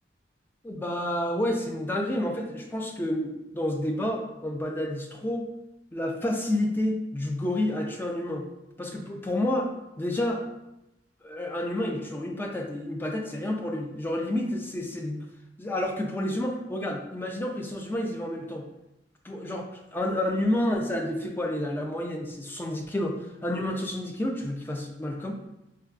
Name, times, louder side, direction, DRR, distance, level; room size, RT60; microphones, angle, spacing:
voice 1, 0.6-5.4 5.9-8.4 8.8-9.7 10.0-10.4 11.2-15.3 15.6-18.6 19.2-19.7 19.9-25.3, left 1 dB, 10° left, 1 dB, 0.3 m, -29 dB
4.5 x 2.3 x 2.4 m, 0.90 s
head